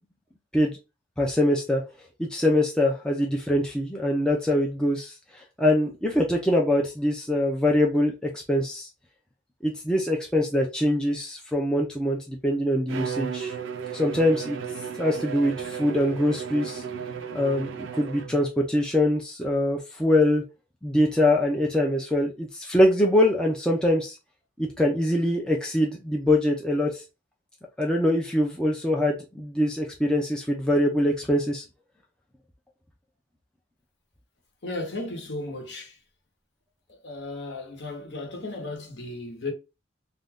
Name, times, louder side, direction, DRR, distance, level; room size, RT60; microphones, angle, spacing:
voice 1, 1.2-1.8 2.2-8.9 9.6-13.6 13.9-14.6 15.0-16.8 17.3-20.4 20.8-24.2 24.6-27.0 27.8-31.6, left 1 dB, 5° left, 0.4 m, -23 dB
Bowed string instrument, 12.9-18.5, right 7 dB, 75° right, 0.4 m, -34 dB
voice 2, 34.6-36.0 37.0-39.5, left 2 dB, 55° left, 0.9 m, -35 dB
2.5 x 2.3 x 3.4 m
head